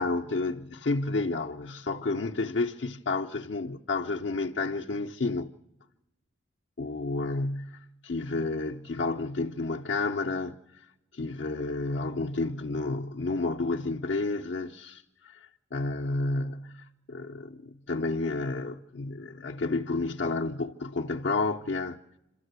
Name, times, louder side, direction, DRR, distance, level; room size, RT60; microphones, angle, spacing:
voice 1, 0.0-5.5 6.8-10.9 11.1-22.0, left 3 dB, 65° left, 0.7 m, -31 dB
27.5 x 13.5 x 8.0 m
head